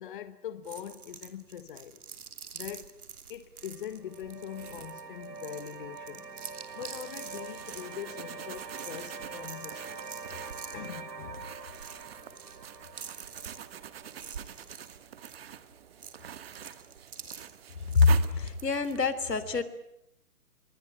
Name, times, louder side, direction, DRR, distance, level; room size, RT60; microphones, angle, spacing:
voice 1, 0.0-2.0 2.5-2.9 3.3-6.3 6.7-10.1 10.7-11.6, left 10 dB, 35° left, 1.3 m, -42 dB
sound 1, 0.6-19.0, right 6 dB, 65° right, 3.0 m, -48 dB
sound 2, 3.6-14.7, right 4 dB, 85° right, 2.6 m, -45 dB
sound 3, 6.6-19.1, right 9 dB, 40° right, 1.6 m, -46 dB
voice 2, 17.9-19.6, left 4 dB, 85° left, 3.6 m, -24 dB
26.5 x 23.0 x 8.9 m
hypercardioid pair, 155°, 47 cm